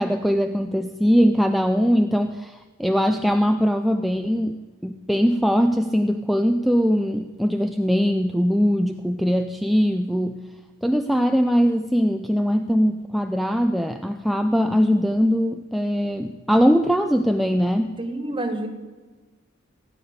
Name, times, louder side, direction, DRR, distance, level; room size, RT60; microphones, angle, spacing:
voice 1, 0.0-10.4 10.8-18.0, equal, ahead, 6 dB, 0.4 m, -21 dB
voice 2, 18.0-18.7, right 1 dB, 25° right, 5 dB, 1.6 m, -28 dB
17.0 x 9.8 x 6.6 m, 1.3 s
head